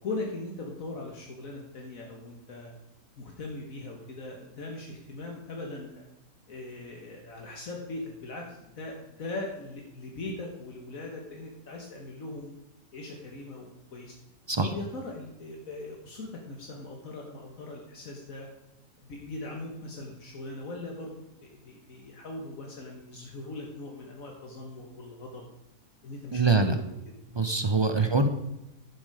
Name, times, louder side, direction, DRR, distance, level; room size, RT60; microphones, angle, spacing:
voice 1, 0.0-2.7 3.2-6.1 6.5-12.5 12.9-14.1 14.6-18.5 19.0-21.2 21.5-25.5 26.0-27.0 27.9-28.1, left 2 dB, 75° left, 0 dB, 1.8 m, -40 dB
voice 2, 26.3-26.8 27.4-28.3, right 3 dB, 30° right, 8 dB, 0.6 m, -23 dB
10.5 x 7.7 x 4.9 m, 0.91 s
omnidirectional pair, 1.5 m